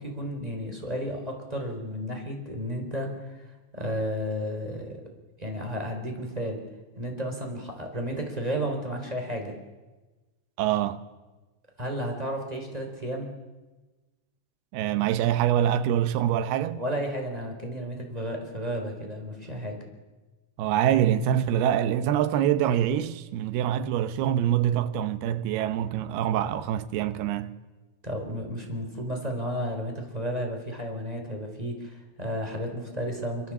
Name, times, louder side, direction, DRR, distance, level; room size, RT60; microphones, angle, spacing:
voice 1, 0.0-3.4 3.7-5.0 5.4-6.6 7.0-9.5 11.8-13.3 16.7-19.8 28.0-33.5, equal, 10° right, 3.3 m, -32 dB
voice 2, 10.6-11.1 14.7-16.8 20.6-27.6, right 10 dB, 80° right, 2.9 m, -25 dB
25.0 x 24.0 x 7.3 m
omnidirectional pair, 4.6 m